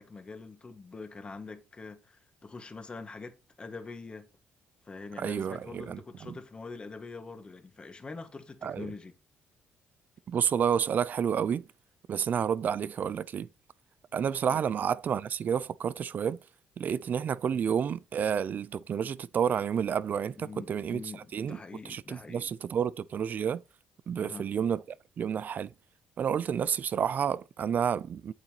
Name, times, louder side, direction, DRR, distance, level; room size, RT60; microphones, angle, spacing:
voice 1, 0.0-4.3 4.9-9.1 14.5-14.6 17.5-17.6 20.4-22.5 24.1-24.5, left 4 dB, 25° left, 1.8 m, -44 dB
voice 2, 5.2-6.4 8.6-8.9 10.3-11.6 12.1-13.5 14.1-16.4 16.8-21.0 21.3-21.6 21.8-23.6 24.1-24.8 25.2-25.7 26.2-28.3, right 8 dB, 45° right, 0.5 m, -30 dB
8.7 x 8.2 x 3.0 m
cardioid pair, 110°, 4 cm